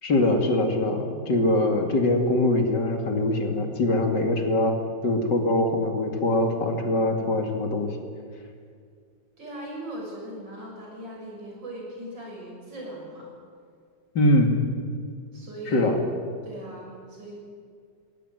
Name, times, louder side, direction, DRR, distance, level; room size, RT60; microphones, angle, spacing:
voice 1, 0.0-4.8 5.0-8.0 14.1-14.5 15.7-16.0, left 1 dB, 70° left, 4 dB, 3.1 m, -23 dB
voice 2, 9.4-13.3 15.3-15.8 16.4-17.3, right 1 dB, 85° right, -2 dB, 7.6 m, -39 dB
21.5 x 17.0 x 9.2 m, 2.2 s
omnidirectional pair, 1.9 m